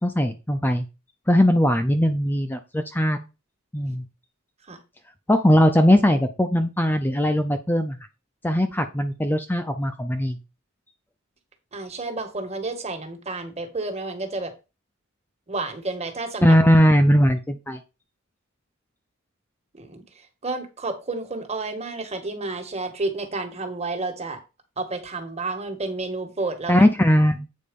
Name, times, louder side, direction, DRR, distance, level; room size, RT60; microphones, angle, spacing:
voice 1, 0.0-0.9 1.3-3.2 3.7-4.0 5.3-8.0 8.4-10.4 16.4-17.8 26.7-27.5, equal, 10° left, 8 dB, 0.5 m, -19 dB
voice 2, 11.7-14.5 15.5-16.6 19.8-20.0 20.4-24.4 24.8-26.9, right 3 dB, 30° right, 6 dB, 1.5 m, -30 dB
8.4 x 4.2 x 5.3 m, 0.28 s
head